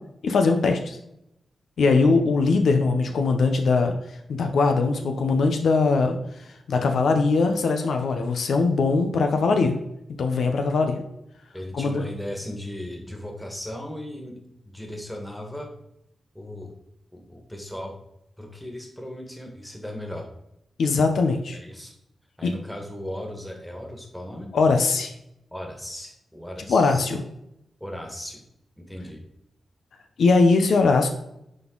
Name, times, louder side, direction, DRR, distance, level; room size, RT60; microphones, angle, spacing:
voice 1, 0.2-1.0 1.8-3.9 4.3-6.2 6.7-9.8 10.2-11.0 11.7-12.0 20.8-21.6 22.4-22.5 24.5-25.1 26.7-27.2 30.2-31.1, left 4 dB, 80° left, 5 dB, 0.9 m, -21 dB
voice 2, 11.5-15.7 16.3-16.7 17.1-18.0 18.4-20.3 21.5-21.9 22.4-24.5 25.5-27.1 27.8-28.4 28.8-29.2, left 1 dB, 5° left, 1 dB, 1.8 m, -37 dB
10.5 x 3.9 x 4.0 m, 0.81 s
wide cardioid pair, 95°, 0 cm